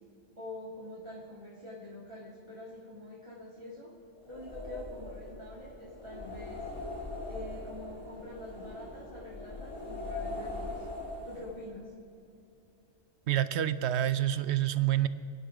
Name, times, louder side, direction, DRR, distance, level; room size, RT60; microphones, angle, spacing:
voice 1, 0.4-3.9 4.3-6.7 7.3-10.8 11.2-11.9, left 1 dB, 25° right, -6 dB, 2.2 m, -45 dB
sound 1, 4.2-11.8, left 2 dB, 25° left, 2.3 m, -41 dB
voice 2, 13.3-15.1, right 12 dB, 70° right, 14 dB, 1.0 m, -27 dB
28.5 x 9.9 x 5.0 m, 2.5 s
omnidirectional pair, 1.2 m